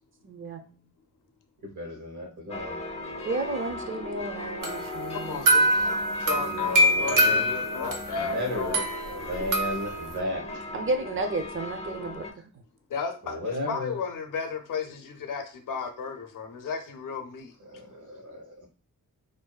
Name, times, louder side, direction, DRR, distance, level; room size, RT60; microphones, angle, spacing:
voice 1, 0.2-0.6 3.2-5.4 10.7-12.6, right 2 dB, 40° right, 6 dB, 0.5 m, -32 dB
voice 2, 1.6-2.8 6.5-7.4 8.2-8.8 9.1-10.4 13.3-13.9 17.7-18.7, equal, 70° right, 1 dB, 1.0 m, -34 dB
sound 1, 2.5-12.3, left 2 dB, 20° left, 0.4 m, -38 dB
sound 2, 4.6-8.2 8.7-10.2, right 1 dB, 90° right, 0.6 m, -25 dB
voice 3, 5.1-8.9 9.4-9.5 10.5-10.6 12.9-17.5, left 5 dB, 80° left, 6 dB, 0.6 m, -34 dB
2.5 x 2.3 x 2.2 m, 0.36 s
cardioid pair, 65°, 32 cm